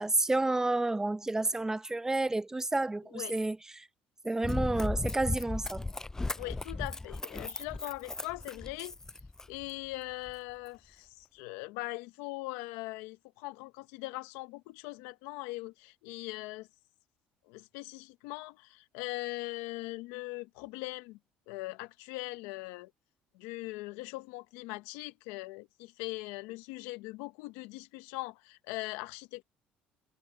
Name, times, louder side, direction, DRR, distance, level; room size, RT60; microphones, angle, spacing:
voice 1, 0.0-3.9 4.2-5.8, right 2 dB, 15° right, 1.0 m, -30 dB
Run, 4.4-9.7 10.3-10.4, left 2 dB, 10° left, 0.3 m, -36 dB
voice 2, 6.4-9.0 9.5-16.7 17.5-21.2 21.5-22.9 23.3-29.4, left 21 dB, 85° left, 1.1 m, -41 dB
supercardioid pair, 85°, 4 cm